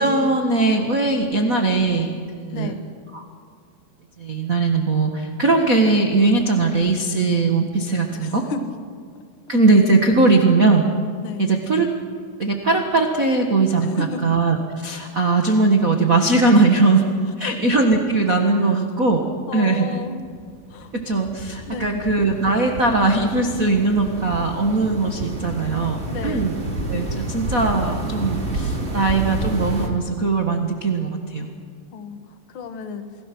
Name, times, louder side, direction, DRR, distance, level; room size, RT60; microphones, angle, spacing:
voice 1, 0.0-2.7 3.1-3.3 4.2-8.4 9.5-10.8 11.4-11.9 12.4-17.1 17.4-19.2 19.5-19.9 20.9-26.5 26.9-31.5, right 3 dB, 75° right, 3 dB, 0.7 m, -19 dB
voice 2, 2.5-2.9 8.1-8.8 9.1-9.3 10.4-10.5 11.2-11.5 13.8-14.4 17.4-17.6 18.6-18.8 19.5-20.2 20.7-20.9 21.7-22.0 26.1-26.5 31.9-33.1, left 4 dB, 70° left, 8 dB, 1.2 m, -33 dB
sound 1, 20.0-29.9, right 2 dB, 20° right, 2.2 m, -29 dB
29.0 x 20.0 x 6.1 m, 2.1 s
omnidirectional pair, 4.4 m